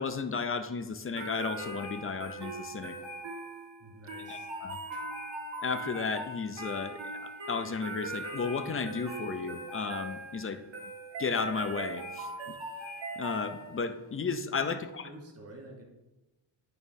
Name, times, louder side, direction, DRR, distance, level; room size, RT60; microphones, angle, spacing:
voice 1, 0.0-3.0 4.3-4.8 5.6-10.6 11.2-12.6 13.2-15.1, left 5 dB, 30° left, 10 dB, 0.4 m, -34 dB
sound 1, 1.2-14.0, right 2 dB, 75° right, 1.8 m, -40 dB
voice 2, 3.8-4.5 14.6-14.8 15.0-15.8, right 2 dB, 30° right, 0 dB, 1.2 m, -49 dB
8.8 x 6.4 x 2.6 m, 1.0 s
wide cardioid pair, 125°, 45 cm